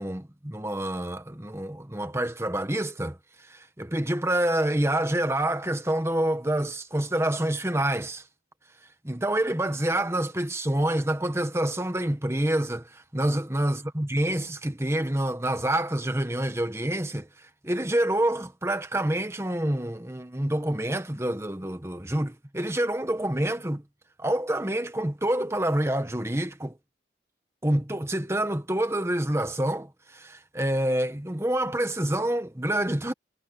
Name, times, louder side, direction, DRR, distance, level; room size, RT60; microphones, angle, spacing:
voice 1, 0.0-3.2 3.5-8.2 9.0-23.8 24.2-26.8 27.6-33.1, right 1 dB, 15° right, 1.3 m, -27 dB
head